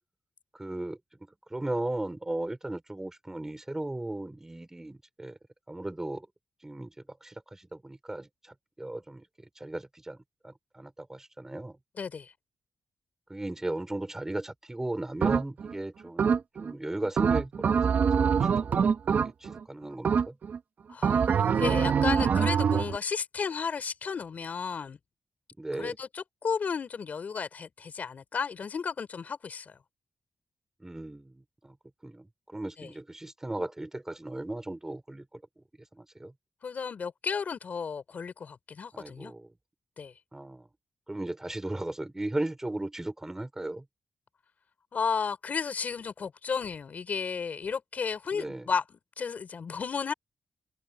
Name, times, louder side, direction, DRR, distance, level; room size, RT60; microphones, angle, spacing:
voice 1, 0.5-1.0 1.5-5.4 5.7-6.3 6.6-10.2 10.4-11.8 13.3-20.4 25.6-25.9 30.8-31.8 32.0-35.6 35.9-36.3 38.9-39.5 40.3-40.7 41.1-43.8 48.3-48.7, right 1 dB, 15° right, 4.6 m, -37 dB
voice 2, 12.0-12.3 20.9-25.0 25.7-29.8 32.8-32.9 36.6-39.3 40.0-40.1 44.9-50.1, left 6 dB, 55° left, 5.0 m, -33 dB
sound 1, 15.2-15.7 16.2-16.7 17.2-19.6 20.1-20.6 21.0-23.0, right 6 dB, 60° right, 0.9 m, -24 dB
wide cardioid pair, 110°, 3 cm